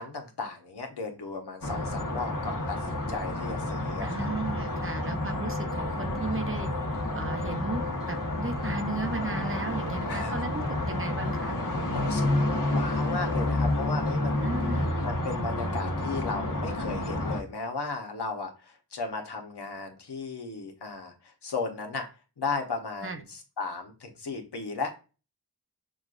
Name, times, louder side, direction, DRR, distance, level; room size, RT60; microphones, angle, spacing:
voice 1, 0.0-4.3 10.1-10.3 11.9-14.5 15.0-22.1 22.4-25.0, left 4 dB, 75° left, 3 dB, 0.9 m, -35 dB
sound 1, 1.6-17.4, left 1 dB, 50° left, 1.1 m, -30 dB
voice 2, 4.0-6.7 7.1-11.5 14.4-14.9 23.0-23.2, right 3 dB, 30° right, 5 dB, 0.6 m, -35 dB
6.1 x 2.3 x 2.4 m, 0.32 s
wide cardioid pair, 45°, 40 cm